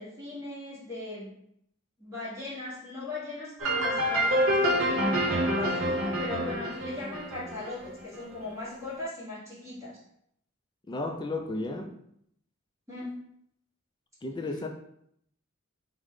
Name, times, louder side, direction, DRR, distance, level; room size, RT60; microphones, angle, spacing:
voice 1, 0.0-1.3 2.0-10.0 12.9-13.3, left 2 dB, 15° right, -8 dB, 1.2 m, -39 dB
sound 1, 3.6-8.2, equal, 60° right, 0.8 m, -27 dB
voice 2, 10.9-11.9 14.2-14.7, left 2 dB, 20° left, 4 dB, 0.4 m, -33 dB
4.9 x 2.1 x 3.7 m, 0.71 s
head